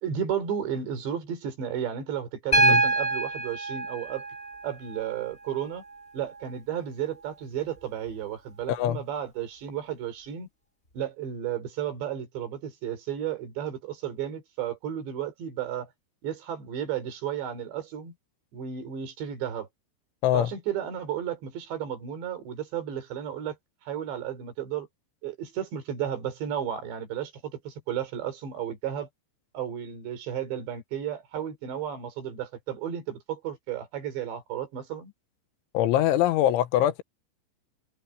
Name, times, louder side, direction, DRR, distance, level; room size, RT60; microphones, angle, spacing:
voice 1, 0.0-4.3 4.6-5.8 6.1-10.5 10.9-15.9 16.2-18.1 18.5-19.7 20.3-23.6 23.9-24.9 25.2-29.1 29.5-35.1, right 9 dB, 70° right, 6.0 m, -33 dB
Piano, 2.5-6.5 8.1-8.2, right 2 dB, 15° left, 4.9 m, -27 dB
voice 2, 8.7-9.0 20.2-20.5 35.8-37.0, left 12 dB, 85° left, 3.6 m, -23 dB
omnidirectional pair, 5.3 m